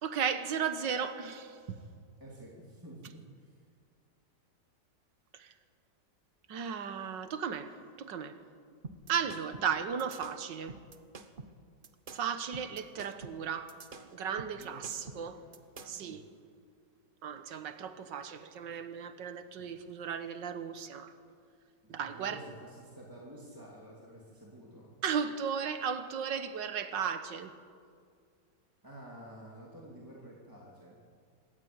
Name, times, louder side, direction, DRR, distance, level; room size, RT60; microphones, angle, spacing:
voice 1, 0.0-1.8 5.4-5.5 6.5-7.7 8.0-8.3 9.1-10.7 12.1-13.7 14.1-15.4 15.9-16.2 17.2-21.1 21.9-22.4 25.0-27.5, right 7 dB, 90° right, 1.9 m, -35 dB
voice 2, 2.2-3.6 14.6-15.5 15.9-16.2 21.8-24.9 28.8-31.0, right 1 dB, 10° right, 2.8 m, -50 dB
sound 1, 8.8-16.1, right 3 dB, 35° right, 1.0 m, -48 dB
26.0 x 13.0 x 8.8 m
omnidirectional pair, 1.9 m